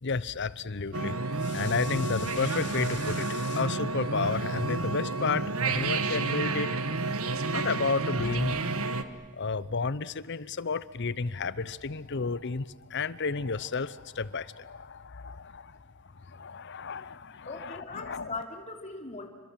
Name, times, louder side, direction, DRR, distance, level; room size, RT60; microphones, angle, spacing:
voice 1, 0.0-7.0 7.5-8.6 9.3-15.8 16.2-18.3, left 4 dB, 55° left, 18 dB, 0.8 m, -32 dB
sound 1, 0.9-9.0, right 3 dB, 85° right, 1.6 m, -30 dB
voice 2, 17.5-19.3, left 3 dB, 35° left, 4 dB, 3.2 m, -39 dB
29.5 x 25.0 x 7.6 m, 1.3 s
head